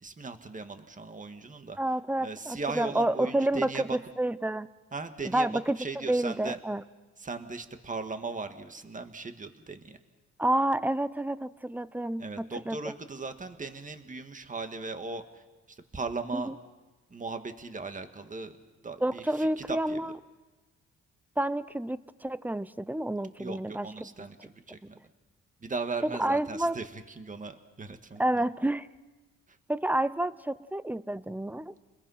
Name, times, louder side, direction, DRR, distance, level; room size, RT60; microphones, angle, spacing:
voice 1, 0.0-1.8 2.2-4.0 4.9-5.5 5.8-6.6 7.2-10.0 12.2-16.5 17.1-18.6 18.8-20.1 23.4-25.0 25.6-28.4 29.5-29.6, right 4 dB, 25° right, 8 dB, 1.9 m, -38 dB
voice 2, 1.8-4.7 5.2-5.8 6.1-6.8 10.4-12.8 16.3-16.5 19.0-20.2 21.4-24.1 26.0-26.8 28.2-28.9 29.7-31.7, right 1 dB, 5° right, 16 dB, 0.7 m, -29 dB
30.0 x 21.0 x 5.8 m, 1.2 s
cardioid pair, 90°, 30 cm